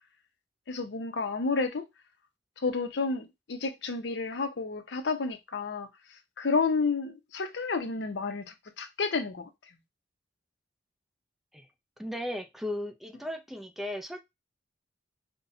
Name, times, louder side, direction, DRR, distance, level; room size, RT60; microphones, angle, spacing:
voice 1, 0.7-1.9 2.6-9.8, left 4 dB, 70° left, 0.7 m, -31 dB
voice 2, 12.0-14.2, left 1 dB, ahead, 0.4 m, -36 dB
5.5 x 2.2 x 2.6 m
head